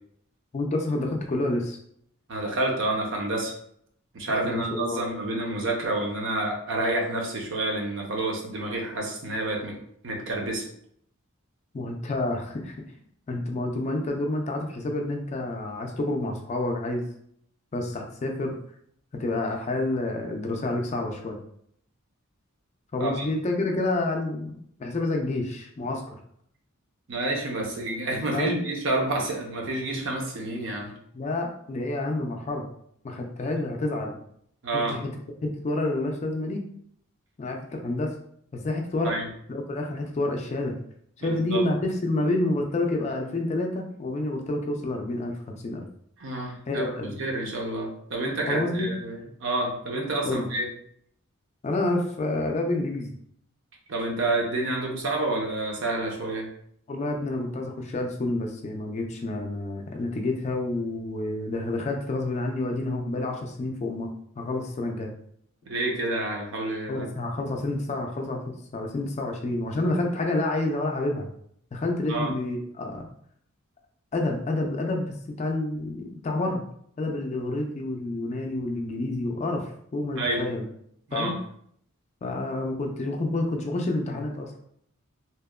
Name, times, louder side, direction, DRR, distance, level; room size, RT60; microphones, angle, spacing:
voice 1, 0.5-1.8 4.4-5.0 11.7-12.8 13.3-17.1 17.7-18.6 19.1-21.4 22.9-26.0 28.3-28.6 31.1-32.7 33.0-34.2 34.7-35.1 35.4-36.6 37.4-38.1 38.5-39.1 39.5-40.8 41.2-45.9 46.7-47.1 48.5-48.9 50.2-50.5 51.6-53.1 56.9-65.1 66.9-71.3 71.7-73.1 74.1-76.6 77.0-80.7 81.1-81.3 82.2-84.6, left 2 dB, 30° left, 2 dB, 0.3 m, -29 dB
voice 2, 2.3-3.5 4.1-9.7 10.0-10.6 23.0-23.3 27.1-30.9 34.6-34.9 39.0-39.3 41.2-41.6 46.2-46.8 47.2-50.7 53.9-56.5 65.7-67.1 72.1-72.3 80.2-80.5 81.1-81.3, right 2 dB, 60° right, 0 dB, 0.6 m, -29 dB
2.8 x 2.1 x 2.2 m, 0.67 s
head